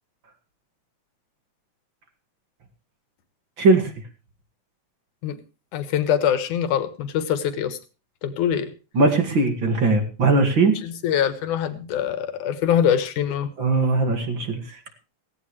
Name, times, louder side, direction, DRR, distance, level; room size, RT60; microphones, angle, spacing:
voice 1, 3.6-3.9 9.0-10.7 13.6-14.8, right 3 dB, 40° right, 6 dB, 2.6 m, -19 dB
voice 2, 5.7-7.8 8.2-8.7 10.8-13.5, left 9 dB, 85° left, 12 dB, 2.9 m, -23 dB
17.0 x 16.5 x 3.2 m, 0.33 s
omnidirectional pair, 3.4 m